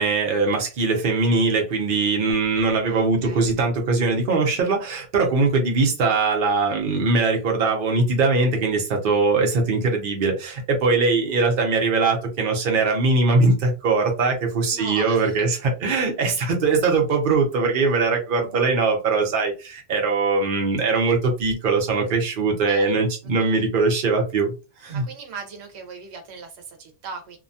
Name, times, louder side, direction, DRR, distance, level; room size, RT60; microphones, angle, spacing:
voice 1, 0.0-24.5 24.8-25.0, right 3 dB, 60° right, 0.9 m, -21 dB
voice 2, 2.6-3.5 14.7-15.5 22.6-22.9 23.4-23.7 25.0-27.4, right 5 dB, 85° right, 1.0 m, -39 dB
2.8 x 2.2 x 2.6 m
omnidirectional pair, 1.1 m